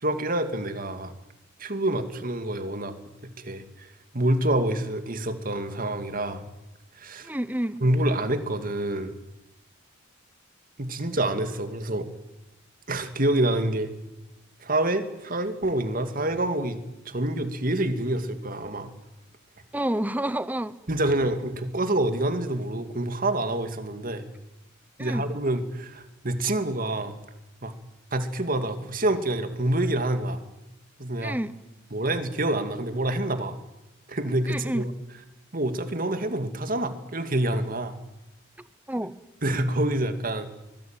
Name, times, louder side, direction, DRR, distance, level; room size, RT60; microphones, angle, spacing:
voice 1, 0.0-1.1 1.6-2.9 3.4-6.4 7.0-7.3 7.8-9.1 10.8-12.1 12.9-13.9 14.6-16.8 17.0-18.9 20.9-24.3 25.0-27.1 27.6-27.7 28.1-30.4 31.0-31.4 31.9-33.6 34.1-34.9 35.5-38.0 39.4-40.5, right 1 dB, 45° right, 8 dB, 2.4 m, -27 dB
voice 2, 7.2-7.8 19.7-20.7 25.0-25.2 31.2-31.5 34.5-34.8 38.9-39.1, right 1 dB, 10° right, 15 dB, 0.9 m, -29 dB
24.5 x 20.5 x 9.1 m, 0.95 s
head